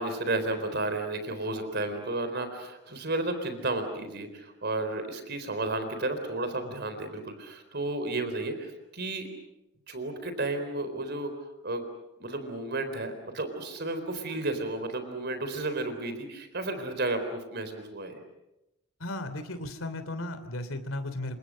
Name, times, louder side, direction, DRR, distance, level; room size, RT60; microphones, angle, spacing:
voice 1, 0.0-9.3 9.9-11.3 11.6-11.8 12.2-18.2, right 2 dB, 50° right, 9 dB, 4.0 m, -32 dB
voice 2, 19.0-21.4, left 1 dB, 70° left, 10 dB, 3.3 m, -35 dB
29.5 x 26.5 x 6.4 m, 0.92 s
head